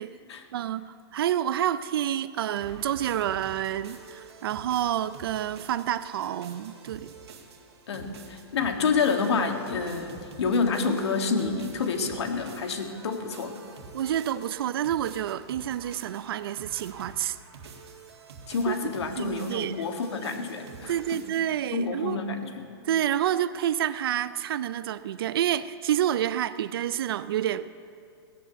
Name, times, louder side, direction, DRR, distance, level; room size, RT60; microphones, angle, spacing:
voice 1, 0.5-7.1 13.9-17.4 18.7-18.8 19.2-19.9 20.9-22.2 22.8-27.7, right 11 dB, 60° right, 0.4 m, -28 dB
sound 1, 2.4-21.6, right 4 dB, 80° right, 2.0 m, -48 dB
voice 2, 7.9-13.6 18.5-21.2 21.7-22.6, left 4 dB, 85° left, 1.8 m, -28 dB
17.0 x 8.3 x 8.1 m
hypercardioid pair, 170°, 14 cm